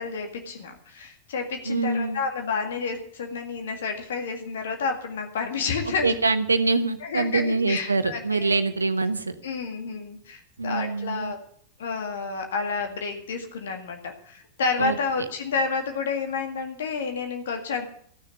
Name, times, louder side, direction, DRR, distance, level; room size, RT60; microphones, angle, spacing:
voice 1, 0.0-6.2 7.0-8.6 9.4-11.4 11.8-17.9, left 4 dB, 60° left, 4 dB, 1.9 m, -30 dB
voice 2, 1.7-2.2 6.0-9.3 10.6-11.3 14.8-15.0, right 3 dB, 80° right, 11 dB, 1.0 m, -24 dB
14.5 x 6.7 x 9.3 m, 0.62 s
figure-of-eight pair, 90°, 0 cm